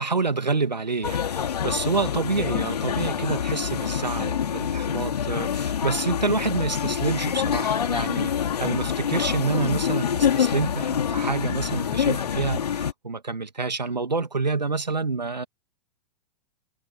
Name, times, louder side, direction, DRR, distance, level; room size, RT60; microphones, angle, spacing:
voice 1, 0.0-15.4, right 4 dB, 85° right, 2.4 m, -28 dB
sound 1, 1.0-12.9, left 8 dB, 70° left, 2.7 m, -26 dB
figure-of-eight pair, 105°, 21 cm